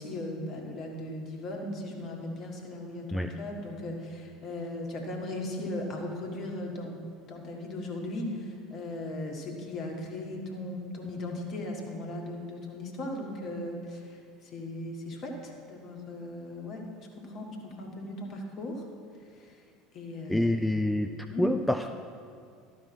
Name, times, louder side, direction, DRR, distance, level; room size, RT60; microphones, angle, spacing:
voice 1, 0.0-16.8 17.2-18.8 19.3-19.6 19.9-20.9 21.3-21.4, left 1 dB, 45° left, 1 dB, 1.7 m, -38 dB
voice 2, 20.3-21.1 21.4-21.9, left 1 dB, 5° left, 7 dB, 0.4 m, -26 dB
12.0 x 5.5 x 6.2 m, 2.3 s
figure-of-eight pair, 70°, 0 cm